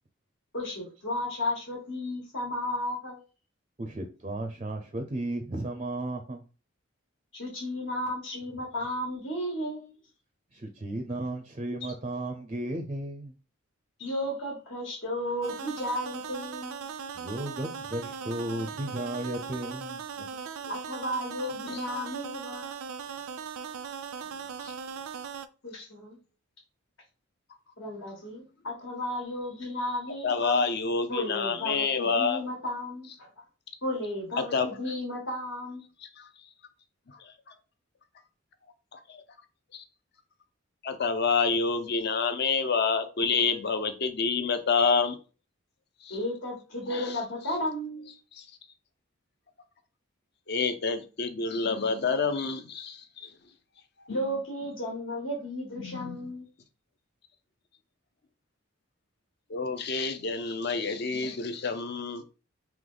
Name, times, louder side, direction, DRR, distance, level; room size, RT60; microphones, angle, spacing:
voice 1, 0.5-3.2 7.3-9.9 11.8-11.9 14.0-16.8 20.7-22.7 25.6-26.2 27.8-30.7 31.1-33.3 33.8-35.9 46.1-48.1 54.1-56.5, left 1 dB, 70° left, -2 dB, 1.5 m, -34 dB
voice 2, 3.8-6.4 10.5-13.3 17.2-20.0, right 1 dB, 30° right, 5 dB, 0.4 m, -34 dB
sound 1, 15.4-25.5, right 6 dB, 90° right, 0.4 m, -39 dB
voice 3, 30.2-32.4 34.4-34.7 36.2-36.3 37.1-37.3 38.9-39.2 39.7-39.8 40.8-45.2 46.0-46.2 46.9-47.2 48.4-48.5 50.5-53.3 54.1-54.2 55.8-56.3 59.5-62.2, left 5 dB, 50° left, 9 dB, 0.6 m, -28 dB
3.4 x 3.0 x 3.8 m, 0.34 s
head